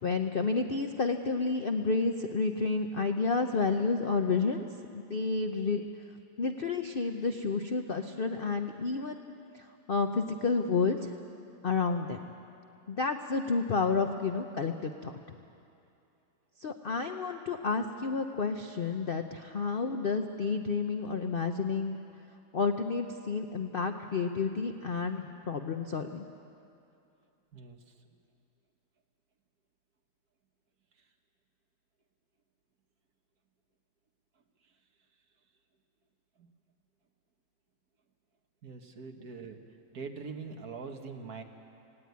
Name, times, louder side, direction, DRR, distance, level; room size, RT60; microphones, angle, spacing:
voice 1, 0.0-4.7 4.9-5.8 6.4-11.1 11.6-12.2 12.9-15.4 16.6-22.0 22.5-26.3, left 4 dB, 80° left, 6 dB, 0.5 m, -30 dB
voice 2, 27.5-27.9 34.6-34.7 36.4-36.5 38.6-39.6 39.9-41.4, right 5 dB, 55° right, 4 dB, 1.7 m, -43 dB
18.5 x 17.0 x 9.5 m, 2.6 s
omnidirectional pair, 2.0 m